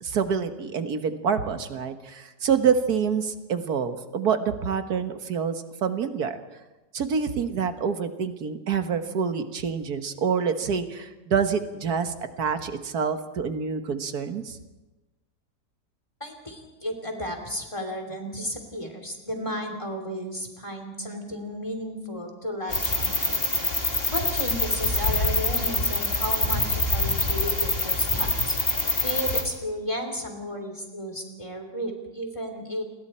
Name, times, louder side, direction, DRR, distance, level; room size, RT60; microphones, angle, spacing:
voice 1, 0.0-6.4 6.9-14.6, right 6 dB, 65° right, 8 dB, 1.8 m, -27 dB
voice 2, 16.2-23.3 24.1-28.6 29.0-32.8, equal, 15° left, 3 dB, 3.2 m, -33 dB
sound 1, 22.7-29.4, left 2 dB, 35° left, 2.7 m, -25 dB
29.0 x 21.5 x 4.4 m, 1.1 s
omnidirectional pair, 1.8 m